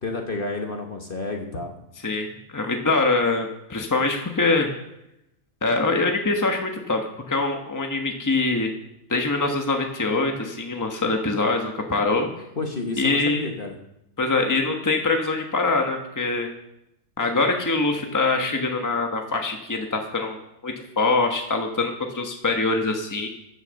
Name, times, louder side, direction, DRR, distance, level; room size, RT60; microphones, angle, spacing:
voice 1, 0.0-1.7 12.6-13.8, left 3 dB, 40° left, 2 dB, 1.4 m, -30 dB
voice 2, 2.0-4.7 5.6-7.0 7.3-8.7 9.1-12.3 13.0-13.5 14.2-16.5 17.2-20.4 20.6-23.3, left 3 dB, 15° left, 3 dB, 1.3 m, -24 dB
15.0 x 6.7 x 6.5 m, 0.85 s
omnidirectional pair, 1.4 m